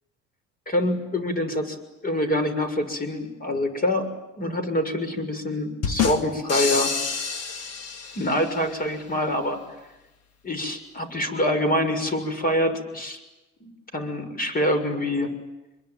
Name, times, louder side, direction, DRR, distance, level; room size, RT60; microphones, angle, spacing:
voice 1, 0.7-4.1 4.4-6.9 8.1-9.6 10.4-13.2 13.6-15.3, left 1 dB, 25° left, 9 dB, 6.6 m, -25 dB
sound 1, 5.8-8.6, left 6 dB, 40° left, 3.1 m, -28 dB
26.5 x 22.5 x 9.4 m, 1.0 s
hypercardioid pair, 80°, 37 cm